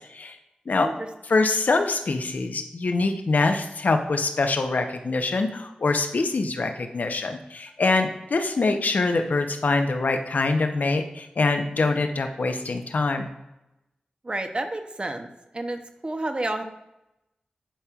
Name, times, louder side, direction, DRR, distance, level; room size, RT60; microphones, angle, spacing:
voice 1, 1.3-13.3, left 3 dB, 70° left, 6 dB, 0.8 m, -24 dB
voice 2, 14.2-16.6, right 2 dB, 35° right, 6 dB, 0.8 m, -30 dB
10.0 x 4.3 x 2.4 m, 0.92 s
cardioid pair, 50°, 3 cm